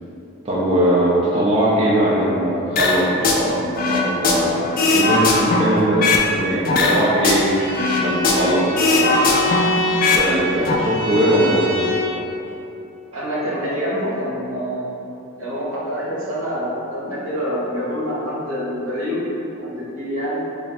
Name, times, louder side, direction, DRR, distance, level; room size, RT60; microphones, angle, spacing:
voice 1, 0.4-7.5 8.0-9.3 10.0-11.9, right 1 dB, 25° right, -8 dB, 0.4 m, -20 dB
sound 1, 2.8-3.4 3.7-6.3 6.6-8.5 8.8-10.2 10.5-10.7, left 3 dB, 40° left, 0.3 m, -18 dB
Bowed string instrument, 7.5-12.2, left 2 dB, 10° left, 0.7 m, -26 dB
voice 2, 13.1-15.0 15.4-19.2 19.6-20.4, equal, 65° right, -7 dB, 1.0 m, -26 dB
3.2 x 2.5 x 4.2 m, 2.9 s
head